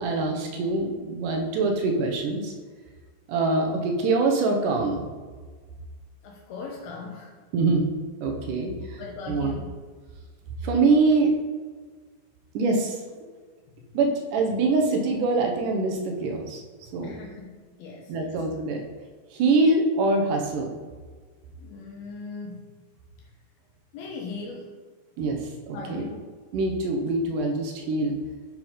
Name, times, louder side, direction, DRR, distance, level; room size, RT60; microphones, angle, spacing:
voice 1, 0.0-2.5 3.3-5.1 7.5-7.8 8.2-9.0 9.3-9.5 10.6-11.3 12.5-13.0 13.9-16.6 16.9-17.1 18.1-18.8 19.3-20.8 25.2-25.4 25.7-26.1 26.5-28.2, right 3 dB, 70° right, 3 dB, 2.2 m, -24 dB
voice 2, 6.2-7.3 9.0-9.7 13.7-13.9 16.9-18.4 21.6-22.6 23.2-23.3 23.9-24.7 25.7-26.2, left 4 dB, 80° left, -1 dB, 2.7 m, -39 dB
9.8 x 4.7 x 5.0 m, 1.5 s
omnidirectional pair, 4.4 m